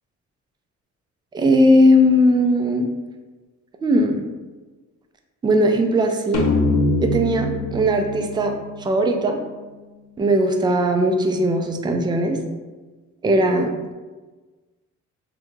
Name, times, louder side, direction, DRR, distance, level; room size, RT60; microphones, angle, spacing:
voice 1, 1.3-2.9 3.8-4.2 5.4-6.5 7.0-9.4 10.2-12.4 13.2-13.9, equal, 15° right, 5 dB, 0.3 m, -18 dB
sound 1, 6.3-9.8, left 2 dB, 55° left, 0.6 m, -24 dB
3.6 x 2.2 x 3.0 m, 1.3 s
cardioid pair, 90°, 30 cm